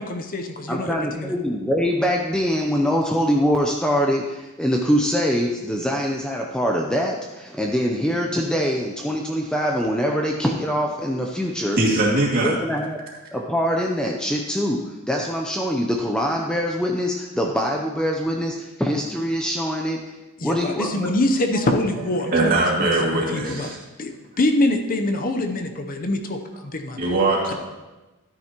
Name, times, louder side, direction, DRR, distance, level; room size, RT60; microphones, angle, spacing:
voice 1, 0.0-1.3 20.4-22.5 22.8-23.7 24.0-27.0 27.5-27.6, left 1 dB, 40° left, 5 dB, 0.7 m, -25 dB
voice 2, 0.7-11.8 12.4-13.0 13.3-20.2 20.4-21.1, equal, 5° left, 0 dB, 0.5 m, -23 dB
voice 3, 11.8-12.6 22.2-23.8 26.9-27.5, right 2 dB, 40° right, -3 dB, 2.3 m, -21 dB
13.0 x 9.3 x 2.9 m, 1.1 s
head